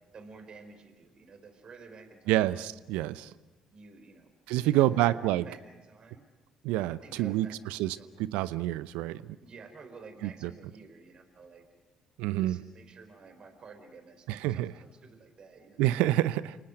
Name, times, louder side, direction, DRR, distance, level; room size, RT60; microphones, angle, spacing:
voice 1, 0.1-2.5 3.7-6.3 7.0-7.6 7.9-8.1 9.4-11.7 12.4-15.8, right 4 dB, 45° right, 7 dB, 4.3 m, -51 dB
voice 2, 2.3-3.3 4.5-5.4 6.6-9.4 10.2-10.5 12.2-12.6 14.3-14.7 15.8-16.6, right 15 dB, 70° right, 16 dB, 0.8 m, -28 dB
29.5 x 19.0 x 7.9 m, 1.2 s
hypercardioid pair, 50°, 2 cm